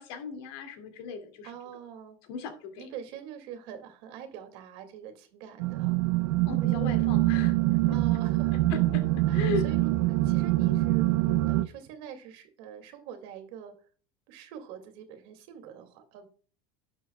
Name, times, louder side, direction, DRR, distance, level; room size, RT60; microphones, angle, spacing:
voice 1, 0.0-1.5 2.3-2.9 6.5-7.6 7.9-8.0 8.5-9.0 9.3-9.7, left 5 dB, 75° left, 2.3 m, -37 dB
voice 2, 1.4-2.2 2.8-6.0 6.6-7.1 7.9-8.8 9.3-9.9 10.2-11.1 11.5-13.7 14.3-16.3, right 8 dB, 65° right, 2.2 m, -44 dB
sound 1, 5.6-11.7, right 17 dB, 85° right, 0.6 m, -25 dB
11.5 x 7.2 x 2.3 m
cardioid pair, 160°, 13 cm